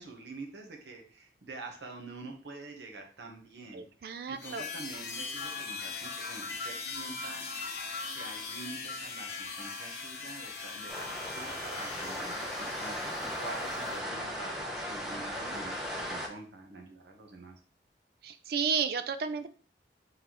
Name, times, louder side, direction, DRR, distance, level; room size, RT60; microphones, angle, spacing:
voice 1, 0.0-7.4 8.0-17.5, right 3 dB, 80° right, 2 dB, 1.0 m, -46 dB
voice 2, 3.7-4.7 15.4-15.6 18.2-19.5, right 6 dB, 60° right, 12 dB, 0.3 m, -33 dB
sound 1, 4.4-14.0, left 4 dB, 60° left, 0.8 m, -40 dB
sound 2, 10.9-16.3, equal, 5° right, 0.7 m, -37 dB
3.9 x 3.5 x 3.0 m, 0.41 s
head